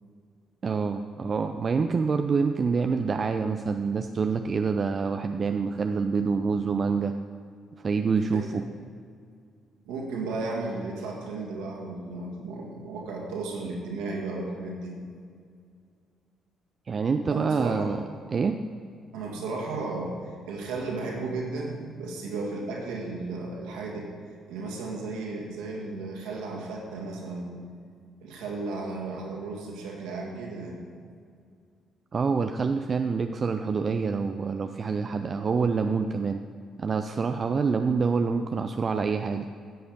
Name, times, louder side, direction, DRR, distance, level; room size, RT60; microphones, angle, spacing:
voice 1, 0.6-7.1 7.8-8.6 16.9-18.0 18.3-18.6 32.1-36.4 36.8-39.5, right 5 dB, 40° right, 7 dB, 0.5 m, -26 dB
voice 2, 8.3-8.6 9.9-14.9 17.3-17.9 19.1-24.1 24.5-27.5 28.2-30.8, right 3 dB, 70° right, -2 dB, 2.2 m, -34 dB
13.5 x 7.8 x 5.2 m, 2.3 s
hypercardioid pair, 45°, 0 cm